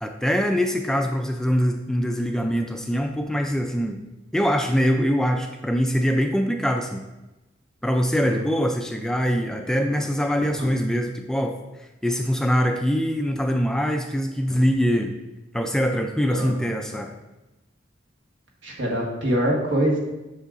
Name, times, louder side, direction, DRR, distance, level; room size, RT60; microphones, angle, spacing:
voice 1, 0.0-4.0 4.3-7.1 7.8-15.1 15.5-17.1, equal, 5° left, 4 dB, 0.3 m, -23 dB
voice 2, 16.3-16.6 18.6-20.0, equal, 75° right, -2 dB, 1.5 m, -24 dB
8.1 x 6.3 x 2.5 m, 1.0 s
head